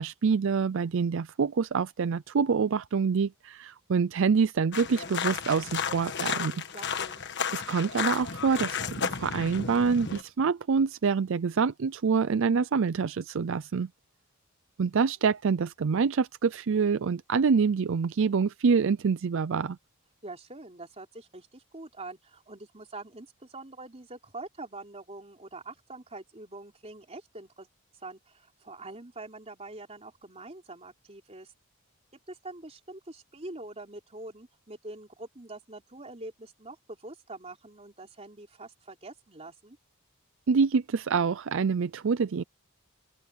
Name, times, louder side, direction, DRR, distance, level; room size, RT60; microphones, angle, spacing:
voice 1, 0.0-6.6 7.5-13.9 14.8-19.8 40.5-42.4, right 5 dB, 60° right, 0.4 m, -26 dB
sound 1, 4.7-10.2, left 6 dB, 55° left, 1.4 m, -33 dB
voice 2, 6.7-7.2 20.2-27.7 27.9-31.5 32.3-39.8, right 2 dB, 30° right, 3.6 m, -44 dB
open air
head